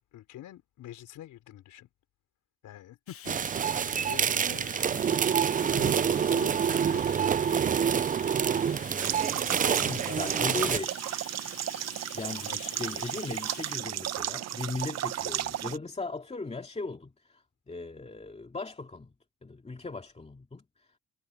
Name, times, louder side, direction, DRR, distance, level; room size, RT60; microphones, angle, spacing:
voice 1, 0.0-1.9 2.6-3.5 3.9-7.2 8.7-10.8 12.4-13.1, left 13 dB, 80° left, 4.9 m, -47 dB
Bathtub (filling or washing), 3.1-13.8, left 9 dB, 50° left, 1.0 m, -48 dB
sound 1, 3.3-10.8, right 7 dB, 30° right, 0.4 m, -27 dB
sound 2, 9.0-15.8, right 12 dB, 60° right, 0.8 m, -34 dB
voice 2, 9.9-10.9 12.1-19.1 19.4-21.0, left 3 dB, 20° left, 2.4 m, -38 dB
cardioid pair, 90°, 30 cm